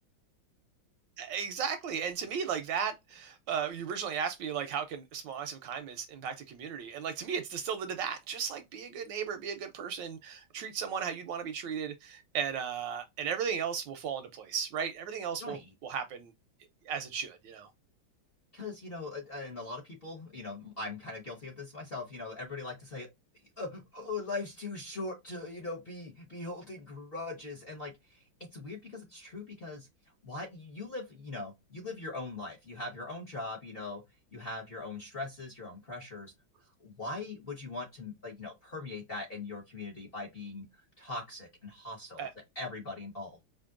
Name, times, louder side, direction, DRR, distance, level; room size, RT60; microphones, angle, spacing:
voice 1, 1.2-16.3 16.9-17.7 42.2-42.3, right 7 dB, 75° right, 1.1 m, -35 dB
voice 2, 15.4-15.7 18.5-23.1 23.6-28.2 28.5-29.9 30.2-34.0 34.3-36.3 36.8-40.6 41.0-42.3 42.5-43.4, left 3 dB, 40° left, 0.9 m, -40 dB
5.1 x 2.6 x 2.4 m
omnidirectional pair, 2.2 m